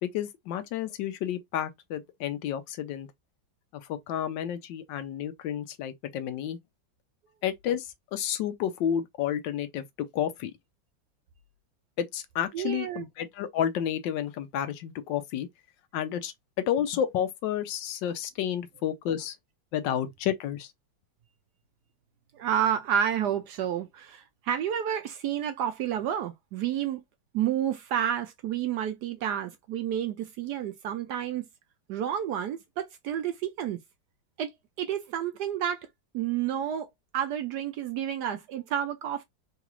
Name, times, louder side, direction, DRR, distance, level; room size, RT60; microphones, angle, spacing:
voice 1, 0.0-3.1 3.7-6.6 7.4-10.5 12.0-15.5 15.9-16.3 16.7-19.4 19.7-20.7, left 10 dB, 75° left, 1.2 m, -31 dB
voice 2, 12.5-13.0 22.4-27.0 27.3-31.4 31.9-33.8 34.4-34.5 34.8-35.9 36.1-36.9 37.1-39.2, right 9 dB, 75° right, 1.0 m, -30 dB
3.9 x 2.4 x 2.9 m
omnidirectional pair, 2.1 m